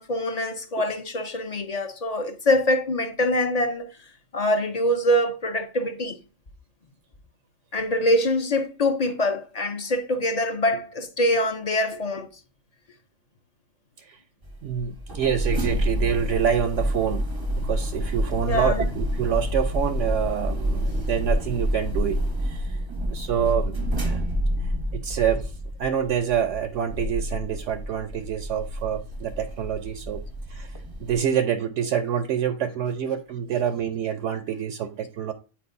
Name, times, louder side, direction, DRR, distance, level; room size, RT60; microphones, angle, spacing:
voice 1, 0.0-3.9 4.3-6.2 7.7-12.3 18.4-18.9, left 1 dB, 40° left, 0.6 m, -24 dB
sound 1, 14.4-31.2, equal, 25° right, 0.6 m, -28 dB
voice 2, 14.6-17.3 17.6-22.8 23.1-24.2 24.6-25.5 25.8-30.2 30.5-35.3, right 8 dB, 70° right, 0.9 m, -27 dB
8.6 x 4.4 x 2.5 m
omnidirectional pair, 1.3 m